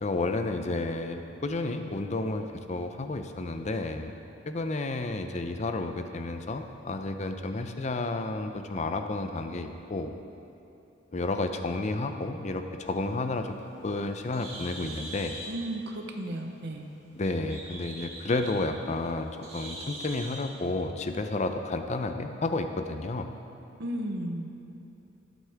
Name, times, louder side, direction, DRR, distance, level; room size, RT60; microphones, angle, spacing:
voice 1, 0.0-4.1 4.5-10.1 11.1-15.4 17.2-23.3, left 2 dB, 40° left, 7 dB, 0.6 m, -31 dB
Bird, 13.3-20.5, right 2 dB, 35° right, 2.4 m, -44 dB
voice 2, 15.5-16.9 23.8-24.5, right 1 dB, 60° right, 3 dB, 0.9 m, -34 dB
15.5 x 8.2 x 3.5 m, 2.9 s
head